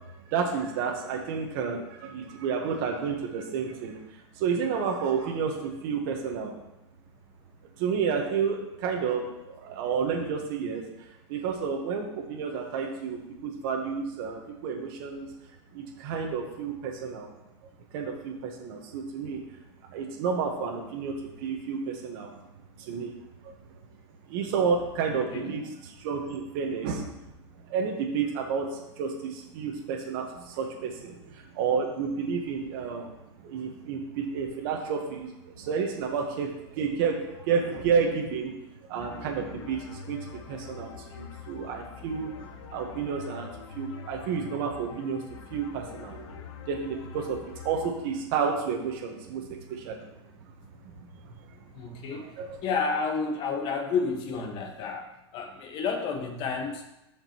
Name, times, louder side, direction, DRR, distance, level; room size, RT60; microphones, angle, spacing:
voice 1, 0.2-4.0 4.3-6.5 7.8-10.8 11.3-15.3 15.7-17.3 17.9-19.4 19.9-22.3 22.8-23.1 23.4-23.5 24.3-27.1 27.7-33.1 33.4-38.6 38.9-43.5 43.7-45.2 45.5-46.3 46.7-50.0 52.1-52.6, right 6 dB, 50° right, 1 dB, 1.3 m, -31 dB
voice 2, 25.1-25.6 51.7-52.3 52.6-56.8, left 5 dB, 35° left, 3 dB, 1.4 m, -31 dB
sound 1, 39.0-47.9, left 7 dB, 80° left, 1.0 m, -45 dB
13.5 x 5.1 x 3.0 m, 0.89 s
supercardioid pair, 155°, 15 cm